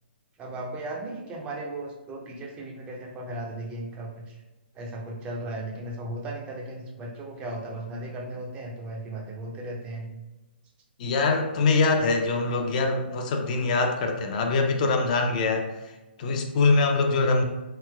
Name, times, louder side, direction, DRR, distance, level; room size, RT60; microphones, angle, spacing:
voice 1, 0.4-4.4 4.7-10.1, right 1 dB, 20° right, 0 dB, 0.5 m, -36 dB
voice 2, 11.0-15.7 16.2-17.4, left 3 dB, 45° left, 3 dB, 0.4 m, -23 dB
3.0 x 2.8 x 2.2 m, 1.1 s
hypercardioid pair, 130°, 6 cm